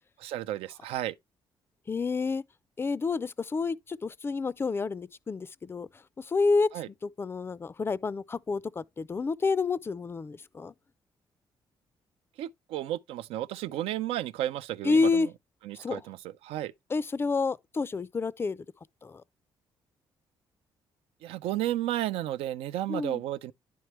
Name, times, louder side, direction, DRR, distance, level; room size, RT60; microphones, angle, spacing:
voice 1, 0.2-1.1 6.7-6.9 12.4-15.3 15.6-16.7 21.2-23.5, right 13 dB, 90° right, 0.4 m, -33 dB
voice 2, 1.9-2.4 2.8-5.9 6.2-6.7 7.0-10.7 14.8-15.3 15.8-16.0 16.9-18.7 19.0-19.2 22.9-23.2, left 4 dB, 25° left, 0.4 m, -29 dB
10.5 x 4.7 x 3.0 m
cardioid pair, 90°, 10 cm